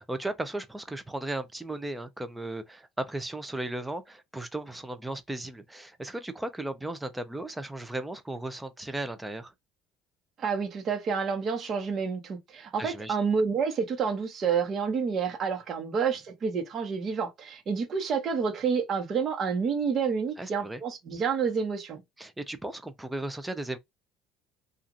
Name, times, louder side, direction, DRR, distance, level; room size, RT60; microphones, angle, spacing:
voice 1, 0.0-9.5 12.8-13.2 20.4-20.8 22.2-23.8, right 1 dB, 10° right, 0.5 m, -36 dB
voice 2, 10.4-22.0, right 6 dB, 40° right, 1.0 m, -29 dB
2.8 x 2.4 x 2.4 m
cardioid pair, 120°, 0 cm